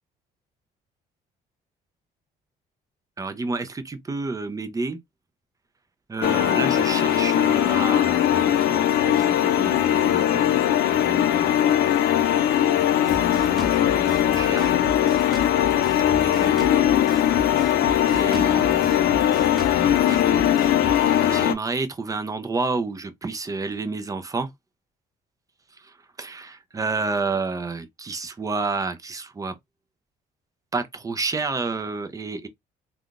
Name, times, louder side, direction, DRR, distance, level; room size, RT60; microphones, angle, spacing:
voice 1, 3.2-5.0 6.1-10.6 11.0-11.9 13.0-14.8 16.2-16.8 17.4-17.7 18.1-19.1 19.7-24.5 25.7-29.5 30.7-32.5, right 3 dB, 20° right, 0.6 m, -31 dB
sound 1, 6.2-21.5, left 11 dB, 65° left, 0.5 m, -20 dB
Drum kit, 13.1-21.0, right 2 dB, ahead, 1.0 m, -37 dB
3.6 x 2.3 x 2.4 m
cardioid pair, 110°, 17 cm